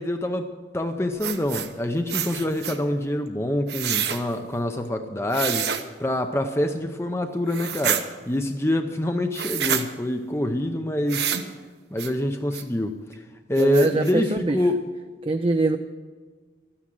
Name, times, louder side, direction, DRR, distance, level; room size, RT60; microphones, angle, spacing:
voice 1, 0.0-5.7 6.0-11.3 11.9-13.2 13.5-14.8, left 1 dB, 15° left, 6 dB, 0.6 m, -26 dB
sound 1, 1.2-1.7 2.1-2.8 3.7-4.2 5.3-5.8 7.5-8.0 9.3-9.8 11.1-11.5 12.0-12.1 12.5-12.6 13.1-13.2 13.6-14.1, right 9 dB, 65° right, 1.0 m, -27 dB
voice 2, 13.6-14.6 15.2-15.8, right 2 dB, 30° right, 6 dB, 0.5 m, -23 dB
13.0 x 9.8 x 7.6 m, 1.4 s
head